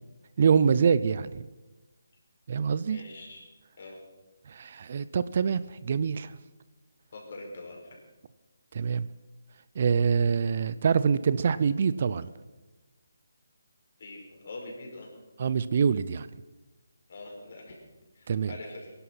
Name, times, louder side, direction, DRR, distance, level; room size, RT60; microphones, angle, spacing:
voice 1, 0.4-1.4 2.5-3.0 4.5-6.3 8.7-9.1 9.8-12.3 15.4-16.3 18.3-18.5, right 6 dB, 45° right, 16 dB, 0.5 m, -25 dB
voice 2, 2.9-3.4 3.8-4.0 7.1-8.0 14.0-15.1 17.1-17.8 18.1-18.9, left 2 dB, 50° left, 0 dB, 5.2 m, -43 dB
20.0 x 11.5 x 5.7 m, 1.1 s
figure-of-eight pair, 160°, 0 cm